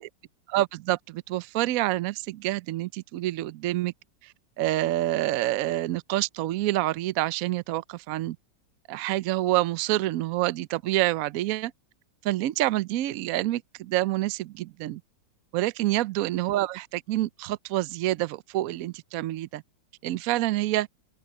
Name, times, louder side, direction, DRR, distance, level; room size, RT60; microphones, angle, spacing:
voice 1, 0.5-3.9 4.2-8.4 8.9-11.7 12.2-15.0 15.5-19.6 20.0-20.9, right 15 dB, 75° right, 0.8 m, -27 dB
open air
omnidirectional pair, 2.0 m